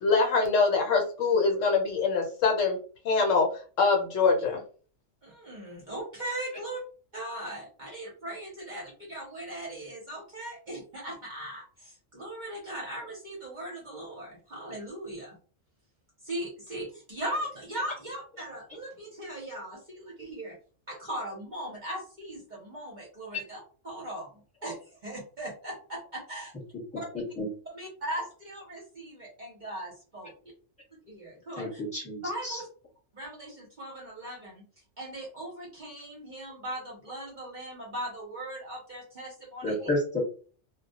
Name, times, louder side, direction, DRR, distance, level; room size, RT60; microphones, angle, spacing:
voice 1, 0.0-2.8 3.0-3.5 3.8-4.6, left 4 dB, 75° left, 2 dB, 1.0 m, -24 dB
voice 2, 5.2-6.8 7.1-15.4 16.2-20.6 20.9-26.5 27.8-30.3 30.9-31.8 32.2-32.7 33.1-34.6 35.0-39.9, right 1 dB, 45° right, -2 dB, 0.7 m, -39 dB
voice 3, 31.6-32.6 39.6-40.2, left 1 dB, 5° left, -4 dB, 1.0 m, -31 dB
2.2 x 2.1 x 2.7 m, 0.40 s
omnidirectional pair, 1.3 m